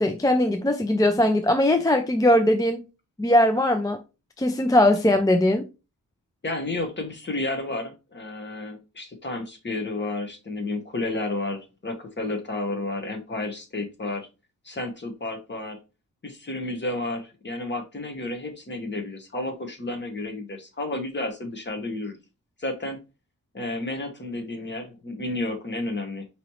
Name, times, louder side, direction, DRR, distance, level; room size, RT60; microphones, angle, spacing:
voice 1, 0.0-2.8 3.2-4.0 4.4-5.7, left 1 dB, 10° left, 0.3 m, -20 dB
voice 2, 6.4-14.3 14.6-15.8 16.2-22.2 22.6-23.0 23.5-26.3, left 2 dB, 35° left, 1.0 m, -31 dB
5.0 x 2.9 x 2.9 m
wide cardioid pair, 155°, 33 cm